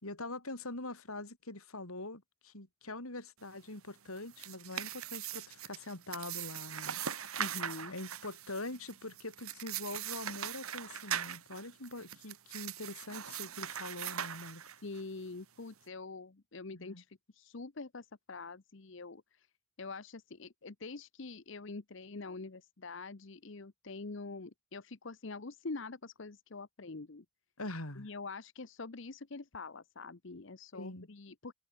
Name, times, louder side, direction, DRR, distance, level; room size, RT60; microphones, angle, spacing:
voice 1, 0.0-7.4 7.9-14.6 16.7-17.0 27.6-28.1 30.7-31.1, left 2 dB, 80° left, 5.1 m, -44 dB
sound 1, 4.1-15.0, right 9 dB, 80° right, 2.8 m, -41 dB
voice 2, 7.4-7.9 14.8-19.5 19.8-27.2 28.0-31.5, left 3 dB, 55° left, 0.9 m, -45 dB
head